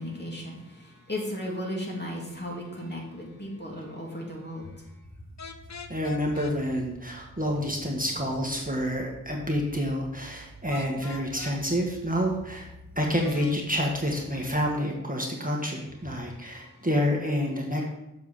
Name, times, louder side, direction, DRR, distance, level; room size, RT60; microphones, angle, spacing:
voice 1, 0.0-4.7 16.2-16.3, left 1 dB, 30° left, -3 dB, 2.6 m, -35 dB
sound 1, 5.0-14.7, right 1 dB, 80° right, 1.6 m, -49 dB
sound 2, 5.4-6.6 10.7-11.6 13.2-13.6, left 6 dB, 55° left, 0.7 m, -41 dB
voice 2, 5.9-12.7 12.9-17.8, equal, 25° right, -1 dB, 1.5 m, -28 dB
7.4 x 4.7 x 7.0 m, 0.91 s
wide cardioid pair, 45°, 33 cm